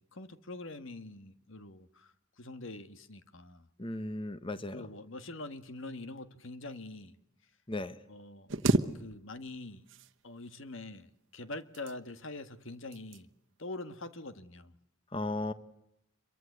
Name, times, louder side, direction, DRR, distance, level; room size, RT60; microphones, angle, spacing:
voice 1, 0.0-3.7 4.5-7.1 8.1-8.5 9.0-9.8 10.2-13.3 13.6-14.7, left 2 dB, 65° left, 1.6 m, -44 dB
voice 2, 3.8-4.8 7.7-8.0 15.1-15.5, left 2 dB, 25° left, 1.2 m, -35 dB
sound 1, 8.5-9.6 9.9-10.6 11.5-12.3 12.9-13.3 13.7-13.9, right 2 dB, 60° right, 1.2 m, -32 dB
26.5 x 23.5 x 8.1 m
head